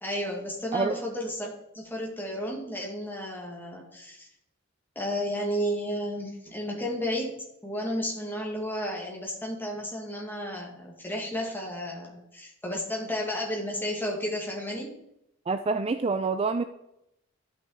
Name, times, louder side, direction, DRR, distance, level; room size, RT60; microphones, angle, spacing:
voice 1, 0.0-4.3 5.0-7.3 7.6-14.9, equal, 10° left, -1 dB, 2.1 m, -32 dB
voice 2, 15.5-16.6, right 4 dB, 25° right, 9 dB, 0.3 m, -27 dB
12.0 x 6.0 x 4.0 m, 0.80 s
head